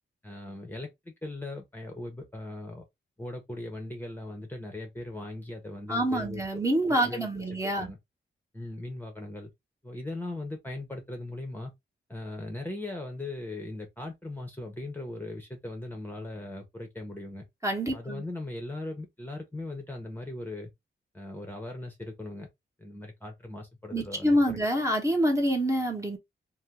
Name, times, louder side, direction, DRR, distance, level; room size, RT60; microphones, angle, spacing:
voice 1, 0.2-2.8 3.2-6.6 6.9-7.3 7.8-8.0 8.5-9.5 9.8-11.7 12.1-17.4 17.9-20.7 21.1-22.5 22.8-24.6, left 2 dB, 10° left, 0.9 m, -39 dB
voice 2, 5.9-7.9 17.6-18.2 23.9-26.2, equal, 15° right, 1.1 m, -26 dB
2.7 x 2.3 x 3.4 m
cardioid pair, 90°, 20 cm